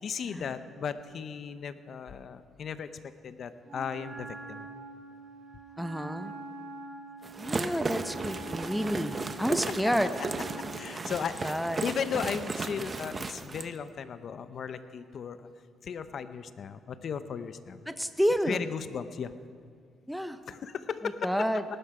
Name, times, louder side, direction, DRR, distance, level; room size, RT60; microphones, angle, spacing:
voice 1, 0.0-2.9 3.2-4.7 7.6-7.7 10.7-11.5 11.8-15.5 15.8-17.8 18.5-19.3 20.5-21.2, left 7 dB, 55° left, 11 dB, 0.8 m, -36 dB
Wind instrument woodwind instrument, 3.6-10.9, right 3 dB, 60° right, 3.7 m, -45 dB
voice 2, 5.8-6.3 7.4-10.1 11.4-11.8 17.9-18.7 20.1-20.4 21.2-21.6, equal, ahead, 9 dB, 0.7 m, -30 dB
sound 1, 7.2-13.7, right 3 dB, 30° right, 0.9 m, -35 dB
19.0 x 12.5 x 5.0 m, 2.1 s
cardioid pair, 90°, 0 cm